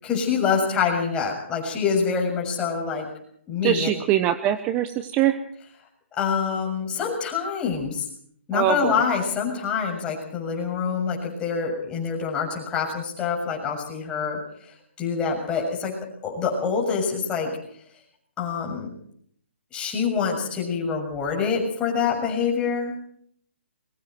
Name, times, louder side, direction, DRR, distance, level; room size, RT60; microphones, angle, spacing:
voice 1, 0.0-3.1 3.5-3.9 6.2-8.0 8.5-14.4 15.0-16.0 16.2-17.5 18.4-18.9 19.7-22.9, left 6 dB, 15° left, -1 dB, 6.9 m, -25 dB
voice 2, 3.6-5.4 8.5-9.0, right 12 dB, 20° right, 11 dB, 1.0 m, -23 dB
25.5 x 22.5 x 4.6 m, 0.64 s
hypercardioid pair, 150°, 7 cm